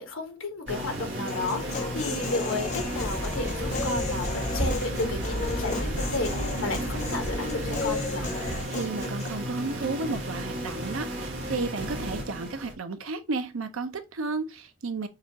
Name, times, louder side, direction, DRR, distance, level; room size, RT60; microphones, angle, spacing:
voice 1, 0.0-8.3, left 2 dB, 75° left, 1.3 m, -33 dB
sound 1, 0.7-12.7, right 1 dB, 60° right, 1.3 m, -34 dB
Human voice, 1.3-9.3, left 4 dB, 35° left, 0.7 m, -35 dB
sound 2, 2.5-8.6, equal, 10° right, 0.5 m, -35 dB
voice 2, 8.7-15.1, right 3 dB, 80° right, 0.6 m, -33 dB
6.5 x 2.4 x 2.9 m
head